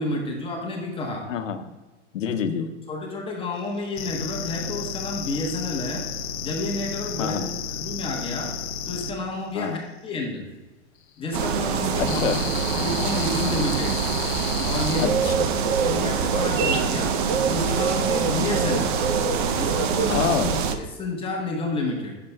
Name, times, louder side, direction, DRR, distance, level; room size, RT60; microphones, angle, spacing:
voice 1, 0.0-1.3 2.9-6.1 6.4-7.4 7.7-8.6 8.9-10.5 11.2-12.2 12.7-14.0 14.6-15.2 15.8-17.2 17.5-19.0 19.6-20.3 20.7-22.2, left 2 dB, 15° left, -1 dB, 0.9 m, -30 dB
voice 2, 1.3-1.6 2.1-2.7 7.2-7.5 9.5-9.8 12.0-12.4 15.0-15.5 20.1-20.6, left 8 dB, 90° left, 8 dB, 0.8 m, -27 dB
sound 1, 3.9-9.1 12.0-15.1, left 6 dB, 30° left, 0.5 m, -32 dB
sound 2, 11.3-20.7, right 6 dB, 45° right, 0.6 m, -24 dB
9.0 x 6.7 x 2.2 m, 1.2 s
hypercardioid pair, 140°, 37 cm